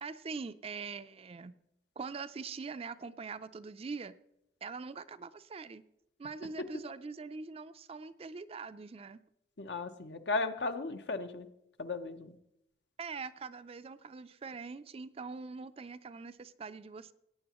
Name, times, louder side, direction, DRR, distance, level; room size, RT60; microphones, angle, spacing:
voice 1, 0.0-1.6 2.0-4.2 4.6-5.8 6.2-9.2 13.0-17.1, right 4 dB, 35° right, 13 dB, 0.4 m, -43 dB
voice 2, 9.6-11.5 11.8-12.3, left 3 dB, 70° left, 9 dB, 0.8 m, -35 dB
17.5 x 9.3 x 3.0 m, 0.80 s
head